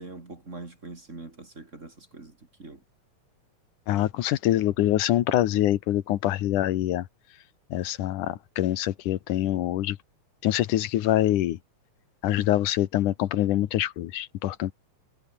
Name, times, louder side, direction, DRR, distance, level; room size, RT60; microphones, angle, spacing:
voice 1, 0.0-2.8, right 3 dB, 25° right, 2.8 m, -43 dB
voice 2, 3.9-7.0 7.7-10.0 10.4-11.6 12.2-14.7, left 13 dB, 85° left, 2.6 m, -25 dB
omnidirectional pair, 3.5 m